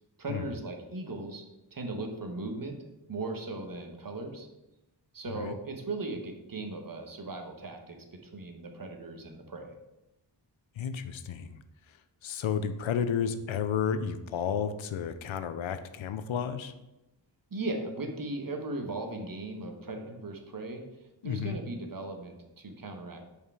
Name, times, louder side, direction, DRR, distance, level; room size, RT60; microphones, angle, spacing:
voice 1, 0.2-1.4 1.7-2.8 3.1-4.5 5.1-9.7 17.5-20.8 21.2-23.3, right 2 dB, 45° right, 4 dB, 1.1 m, -38 dB
voice 2, 5.3-5.6 10.8-11.6 12.2-16.7 21.2-21.6, left 7 dB, 85° left, 11 dB, 0.6 m, -32 dB
5.6 x 4.9 x 4.8 m, 0.96 s
wide cardioid pair, 70°, 46 cm